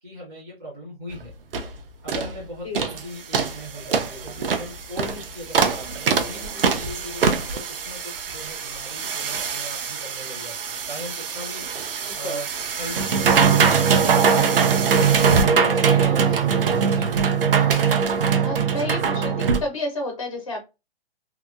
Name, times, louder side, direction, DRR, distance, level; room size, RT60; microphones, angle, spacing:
voice 1, 0.0-1.3 1.6-14.2 15.1-16.5 16.8-17.2, equal, 15° right, -8 dB, 0.5 m, -39 dB
sound 1, 1.1-1.2 1.5-1.7 2.1-2.3 2.7-3.0 3.3-19.6, right 6 dB, 60° right, 0.6 m, -22 dB
voice 2, 12.0-12.4 15.5-15.9 16.2-16.4 18.4-19.3 19.6-20.6, left 2 dB, 35° left, 1 dB, 0.4 m, -31 dB
2.8 x 2.6 x 2.3 m, 0.27 s
hypercardioid pair, 180°, 31 cm